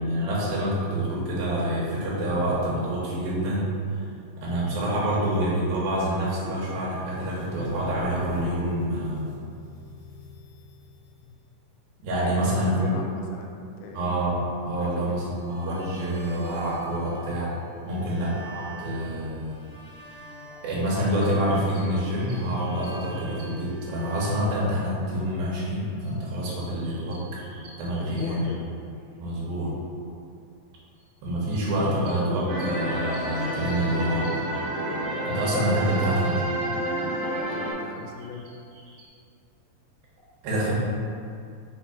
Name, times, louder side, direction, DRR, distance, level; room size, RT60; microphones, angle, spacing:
voice 1, 0.0-3.7 4.4-9.3 12.0-12.9 13.9-17.5 17.8-19.6 20.6-27.2 27.8-28.5 29.2-29.7 31.2-34.4 35.2-36.4 40.4-40.8, right 1 dB, 85° right, -6 dB, 3.1 m, -27 dB
sound 1, 7.2-11.4 15.2-17.6 17.9-24.4, equal, 60° left, 1.6 m, -44 dB
voice 2, 12.4-14.1 14.8-15.2 17.9-18.1 27.6-29.0 37.5-38.5 40.6-40.8, left 4 dB, 80° left, 1 dB, 2.0 m, -40 dB
sound 2, 21.1-23.9 26.0-29.1 31.0-34.7 37.9-39.1, right 3 dB, 65° right, 2.4 m, -51 dB
sound 3, 32.5-37.7, right 1 dB, 50° right, 1.4 m, -29 dB
6.0 x 3.7 x 4.5 m, 2.4 s
omnidirectional pair, 4.1 m